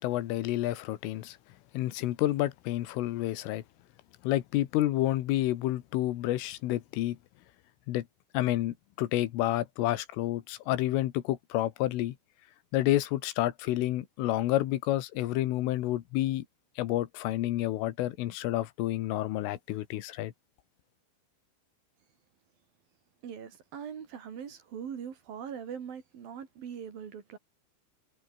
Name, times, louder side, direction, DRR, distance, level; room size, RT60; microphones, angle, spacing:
voice 1, 0.0-1.4 1.7-3.6 4.2-7.2 7.9-8.1 8.3-12.2 12.7-16.5 16.8-20.3, left 15 dB, 90° left, 4.0 m, -29 dB
voice 2, 23.2-27.4, right 7 dB, 50° right, 4.0 m, -41 dB
omnidirectional pair, 5.6 m